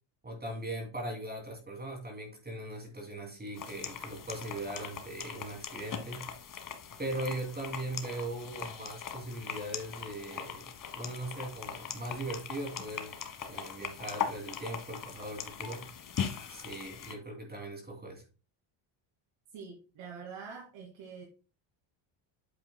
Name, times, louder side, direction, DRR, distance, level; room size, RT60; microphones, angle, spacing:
voice 1, 0.2-6.3 7.0-13.2 13.5-15.9 16.5-18.2, right 1 dB, 20° right, 2.7 m, -39 dB
sound 1, 3.6-17.1, left 7 dB, 40° left, 1.4 m, -40 dB
voice 2, 19.5-21.2, right 6 dB, 75° right, 2.4 m, -45 dB
8.6 x 7.4 x 2.2 m
cardioid pair, 130°, 50 cm